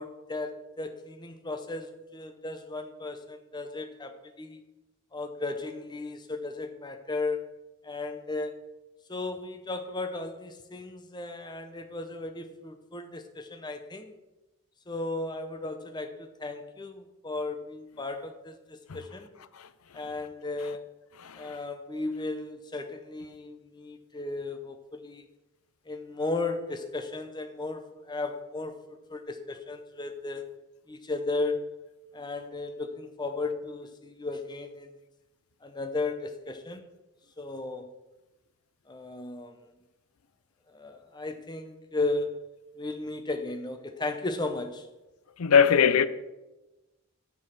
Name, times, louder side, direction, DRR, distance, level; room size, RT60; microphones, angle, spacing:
voice 1, 0.0-4.6 5.1-7.4 7.8-8.6 9.1-14.1 14.9-19.3 19.9-20.8 21.4-25.3 25.9-28.8 29.1-30.4 30.9-31.7 32.1-34.9 35.6-36.9 37.4-37.9 38.9-39.6 40.7-42.4 42.8-44.9, left 2 dB, 20° left, 0.7 m, -35 dB
voice 2, 21.2-21.6 45.4-46.1, left 7 dB, 80° left, 0.5 m, -21 dB
6.9 x 5.9 x 6.4 m
head